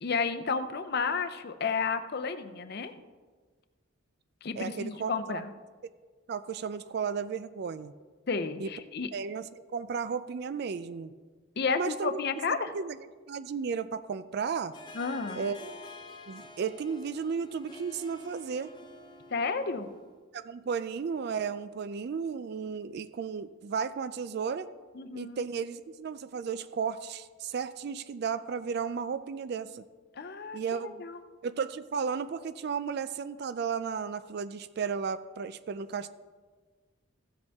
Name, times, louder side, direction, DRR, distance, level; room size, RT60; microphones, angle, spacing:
voice 1, 0.0-2.9 4.4-5.5 8.3-9.1 11.6-12.7 14.9-15.4 19.3-20.0 24.9-25.4 30.1-31.2, left 4 dB, 55° left, 9 dB, 0.6 m, -32 dB
voice 2, 4.5-5.4 6.3-7.9 8.6-8.7 9.1-9.5 9.7-11.1 11.8-12.2 12.7-13.0 13.3-14.7 15.4-15.7 16.3-18.7 20.3-24.7 25.1-29.8 30.5-31.0 31.4-36.1, right 6 dB, 55° right, 13 dB, 0.4 m, -34 dB
Harp, 14.7-20.2, left 2 dB, 25° left, 0.8 m, -48 dB
15.0 x 7.7 x 3.5 m, 1.5 s
head